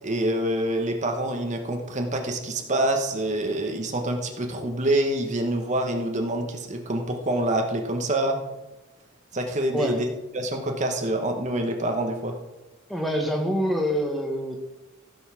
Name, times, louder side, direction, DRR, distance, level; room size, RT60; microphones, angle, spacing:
voice 1, 0.0-8.4 9.3-10.1 10.3-12.3, right 1 dB, 35° right, 3 dB, 1.1 m, -26 dB
voice 2, 12.9-14.6, equal, ahead, 2 dB, 1.4 m, -25 dB
15.0 x 5.5 x 5.8 m, 1.0 s
head